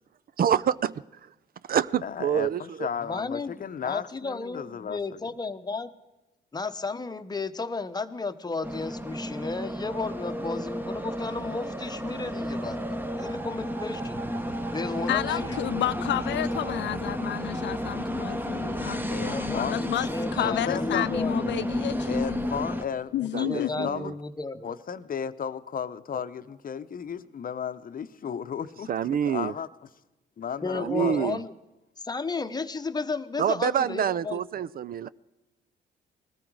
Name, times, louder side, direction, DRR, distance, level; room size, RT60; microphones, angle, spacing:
voice 1, 0.4-0.9 1.7-2.9 23.3-24.1 28.9-29.5 30.7-31.4 33.4-35.1, right 9 dB, 50° right, 0.4 m, -27 dB
voice 2, 2.0-5.2 12.3-12.4 18.7-19.8 20.4-21.1 22.1-24.1 24.6-28.9 29.2-29.7 30.4-31.4, left 7 dB, 45° left, 0.8 m, -34 dB
voice 3, 3.1-5.9 6.5-14.3 14.7-15.6 19.3-21.6 23.2-24.7 30.6-31.5 32.0-34.4, left 3 dB, 20° left, 0.9 m, -33 dB
sound 1, 8.6-22.9, equal, 10° right, 1.0 m, -32 dB
voice 4, 15.1-22.4 23.1-23.9, left 13 dB, 65° left, 0.4 m, -31 dB
19.5 x 14.0 x 4.7 m
cardioid pair, 90°, 20 cm